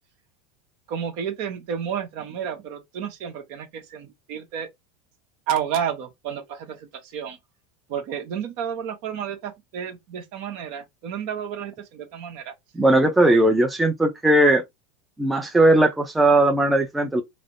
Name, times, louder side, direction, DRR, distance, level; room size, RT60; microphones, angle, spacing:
voice 1, 0.9-4.7 5.5-7.4 7.9-12.5, right 8 dB, 65° right, 1.0 m, -31 dB
voice 2, 12.7-14.6 15.2-17.2, right 1 dB, 10° right, 0.6 m, -18 dB
3.3 x 2.0 x 2.6 m
supercardioid pair, 115°, 0 cm